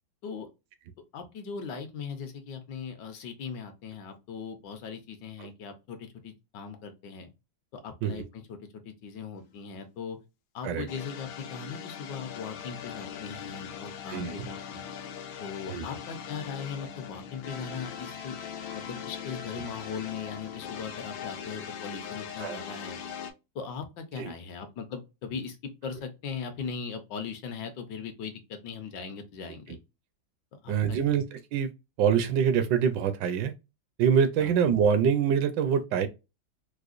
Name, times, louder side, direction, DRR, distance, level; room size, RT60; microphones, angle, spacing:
voice 1, 1.1-7.3 7.7-8.6 8.8-10.2 10.5-14.8 15.4-18.4 18.7-23.0 23.5-29.8 30.6-31.0 34.4-34.5, left 6 dB, 70° left, 1.3 m, -39 dB
sound 1, 10.9-23.3, left 8 dB, 90° left, 1.4 m, -40 dB
voice 2, 14.1-14.5 15.7-15.8 22.4-22.6 24.2-24.3 30.7-31.7 32.0-33.5 34.0-36.1, right 7 dB, 75° right, 1.2 m, -25 dB
4.8 x 2.1 x 2.4 m
omnidirectional pair, 2.0 m